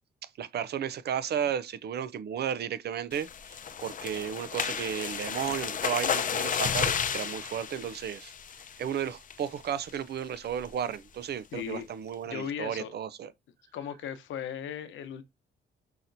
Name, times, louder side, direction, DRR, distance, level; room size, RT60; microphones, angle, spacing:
voice 1, 0.4-8.3 8.8-13.3, right 9 dB, 55° right, 0.5 m, -33 dB
sound 1, 3.1-8.9 9.3-9.6 9.9-10.0 10.4-10.7, left 7 dB, 40° left, 0.6 m, -32 dB
voice 2, 11.5-11.9 12.2-12.9 13.7-15.2, left 8 dB, 75° left, 0.8 m, -37 dB
5.7 x 2.8 x 2.6 m
cardioid pair, 90°, 20 cm